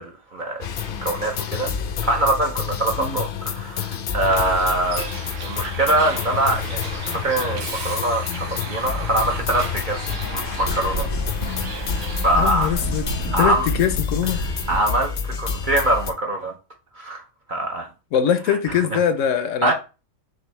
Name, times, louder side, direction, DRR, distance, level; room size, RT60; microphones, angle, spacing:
voice 1, 0.0-1.7 2.0-5.1 5.4-10.0 10.3-11.1 11.5-11.6 12.2-12.8 13.3-13.7 14.7-16.5 16.9-17.2 17.5-17.9 18.5-18.6 19.6-19.7, right 2 dB, 50° right, 0.6 m, -23 dB
sound 1, 0.6-16.1, left 6 dB, 55° left, 0.6 m, -29 dB
Bus, 4.2-14.8, right 2 dB, 65° right, 1.3 m, -32 dB
voice 2, 12.4-13.0 13.4-14.4 18.1-19.7, left 9 dB, 75° left, 0.9 m, -22 dB
6.1 x 2.7 x 3.1 m
omnidirectional pair, 1.4 m